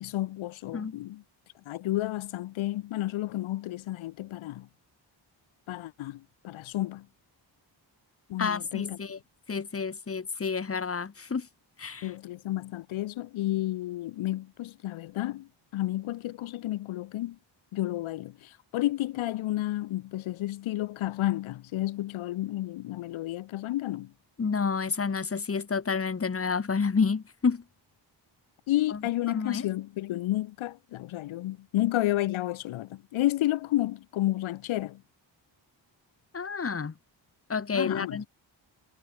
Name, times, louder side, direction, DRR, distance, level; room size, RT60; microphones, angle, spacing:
voice 1, 0.0-1.2 1.7-4.7 5.7-7.1 8.3-9.0 12.0-17.4 17.7-24.1 28.7-35.0 37.7-38.3, left 15 dB, 90° left, 0.6 m, -31 dB
voice 2, 8.4-9.2 9.5-11.5 11.8-12.1 24.4-27.6 28.9-29.0 29.3-29.7 36.3-36.9 37.5-38.3, left 5 dB, 30° left, 1.2 m, -29 dB
cardioid pair, 75°, 46 cm